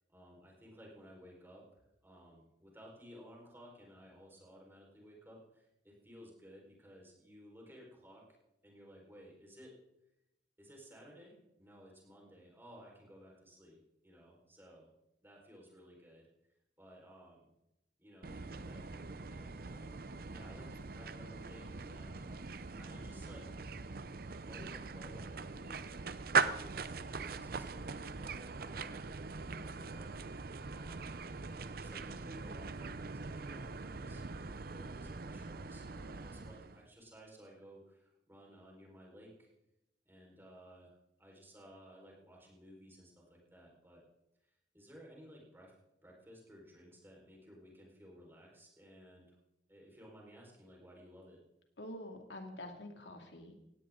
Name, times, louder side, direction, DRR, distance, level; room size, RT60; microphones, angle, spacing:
voice 1, 0.1-1.6 2.0-8.2 8.6-9.7 10.6-14.9 15.2-16.3 16.8-17.5 18.0-23.6 24.2-25.9 26.3-39.5 40.0-44.0 44.4-45.7 46.0-49.4 49.7-51.4, equal, 15° right, -2 dB, 4.7 m, -57 dB
sound 1, 18.2-36.8, right 4 dB, 55° right, 0.7 m, -41 dB
voice 2, 51.8-53.6, left 1 dB, 90° left, 4 dB, 2.4 m, -47 dB
18.0 x 17.0 x 3.8 m, 0.89 s
head